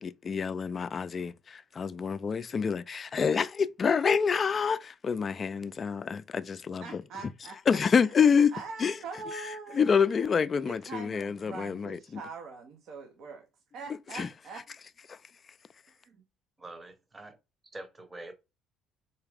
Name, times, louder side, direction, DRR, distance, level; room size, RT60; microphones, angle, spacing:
voice 1, 0.0-7.0 7.7-8.5 8.8-8.9 9.7-12.2 14.1-14.3 15.1-15.2, left 6 dB, 40° left, 0.3 m, -27 dB
voice 2, 6.8-8.1 8.5-13.5 13.7-14.7 15.9-16.2, right 4 dB, 65° right, 0.7 m, -43 dB
voice 3, 16.6-17.4 17.7-18.4, right 2 dB, 20° right, 0.9 m, -45 dB
4.0 x 2.3 x 3.4 m
supercardioid pair, 80°, 0 cm